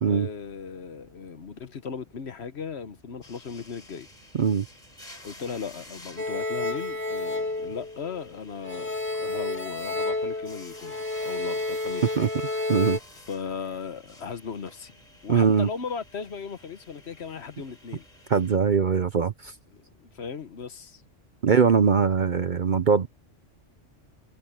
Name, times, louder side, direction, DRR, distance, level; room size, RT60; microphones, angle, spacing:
voice 1, 0.1-4.1 5.2-11.0 11.2-12.1 13.3-14.9 15.2-18.0 19.7-21.0, left 6 dB, 60° left, 1.3 m, -37 dB
sound 1, 3.2-18.6, left 1 dB, 35° left, 4.4 m, -52 dB
voice 2, 4.3-4.7 12.2-12.3 12.7-13.0 15.3-15.7 18.3-19.5 21.4-23.1, right 6 dB, 50° right, 0.7 m, -21 dB
sound 2, 6.2-8.3 8.6-13.0, left 2 dB, 10° left, 2.0 m, -30 dB
omnidirectional pair, 1.3 m